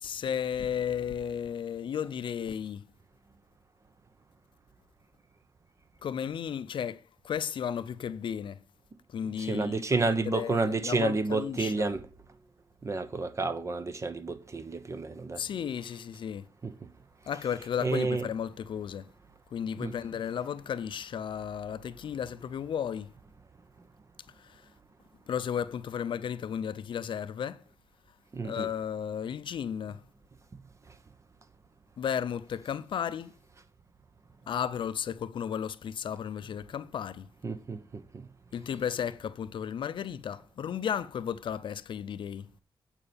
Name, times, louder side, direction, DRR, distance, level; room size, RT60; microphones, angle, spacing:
voice 1, 0.0-2.8 6.0-8.6 9.1-11.9 15.4-16.5 17.3-19.1 19.5-23.1 24.4-24.7 25.3-27.6 28.4-30.0 32.0-33.3 34.5-37.3 38.5-42.5, left 8 dB, 65° left, 0.6 m, -34 dB
voice 2, 9.4-12.1 12.8-15.4 16.6-16.7 17.8-18.3 19.8-19.9 28.3-28.7 37.4-38.2, right 3 dB, 35° right, 0.9 m, -30 dB
8.8 x 4.5 x 7.1 m
cardioid pair, 95°, 9 cm